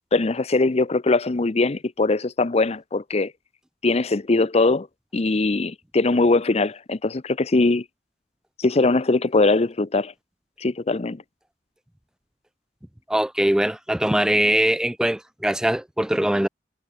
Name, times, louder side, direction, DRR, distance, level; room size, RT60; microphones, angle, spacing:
voice 1, 0.1-3.3 3.8-4.9 5.1-7.8 8.6-10.1 10.6-11.2, left 3 dB, 35° left, 0.7 m, -21 dB
voice 2, 13.1-16.5, right 1 dB, 5° right, 0.3 m, -22 dB
head